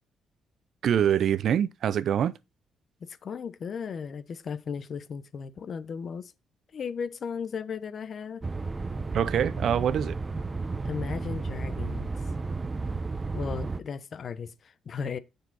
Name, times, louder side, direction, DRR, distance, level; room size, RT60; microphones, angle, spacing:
voice 1, 0.8-2.3 9.1-10.2, right 9 dB, 65° right, 0.6 m, -24 dB
voice 2, 3.0-6.3 6.7-8.4 10.8-12.2 13.3-15.2, left 6 dB, 50° left, 1.0 m, -36 dB
sound 1, 8.4-13.8, right 3 dB, 25° right, 0.8 m, -32 dB
6.8 x 6.6 x 4.2 m
cardioid pair, 90°, 0 cm